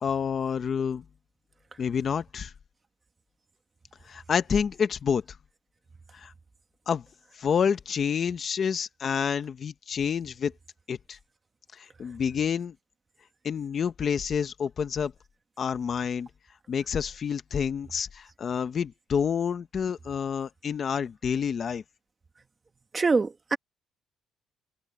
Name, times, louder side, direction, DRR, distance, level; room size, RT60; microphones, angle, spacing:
voice 1, 0.0-1.0 1.8-2.5 4.1-5.2 6.1-6.3 6.9-7.0 7.4-10.5 10.9-11.2 11.7-12.7 13.4-15.1 15.6-16.3 16.7-21.8, left 7 dB, 35° left, 1.0 m, -28 dB
voice 2, 22.9-23.6, right 4 dB, 20° right, 1.7 m, -24 dB
cardioid pair, 160°, 0 cm